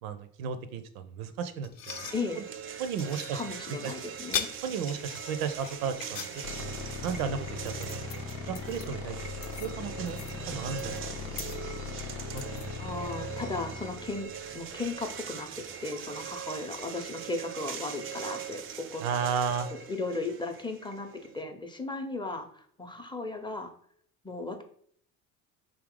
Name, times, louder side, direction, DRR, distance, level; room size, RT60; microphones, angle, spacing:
voice 1, 0.0-2.1 2.3-2.4 2.8-3.4 3.8-3.9 4.6-6.3 6.6-6.7 7.0-8.1 8.5-9.3 9.6-10.2 10.5-11.0 11.5-11.6 11.9-12.0 12.3-12.8 19.0-19.7, right 6 dB, 75° right, 10 dB, 0.6 m, -34 dB
sound 1, 1.6-13.1, left 8 dB, 50° left, 0.6 m, -42 dB
sound 2, 1.9-21.4, right 8 dB, 30° right, 0.4 m, -41 dB
voice 2, 2.1-2.4 3.3-4.5 12.8-14.3 14.5-19.0 19.7-23.7 24.2-24.6, left 3 dB, 10° left, 5 dB, 0.6 m, -36 dB
sound 3, 6.4-15.6, left 5 dB, 90° left, 0.7 m, -40 dB
3.7 x 2.8 x 3.7 m, 0.62 s
hypercardioid pair, 60°, 42 cm